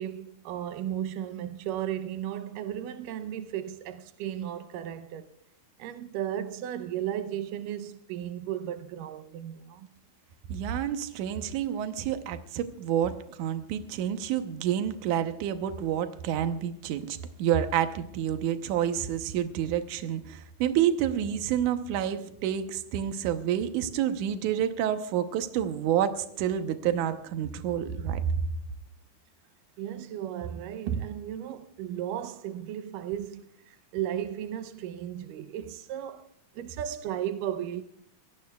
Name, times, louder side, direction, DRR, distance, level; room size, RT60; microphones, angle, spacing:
voice 1, 0.0-5.3 5.8-9.9 29.8-37.8, right 10 dB, 90° right, 2.4 m, -35 dB
voice 2, 10.5-17.1 17.4-28.2, right 10 dB, 75° right, 2.3 m, -29 dB
24.5 x 17.5 x 2.3 m
omnidirectional pair, 3.7 m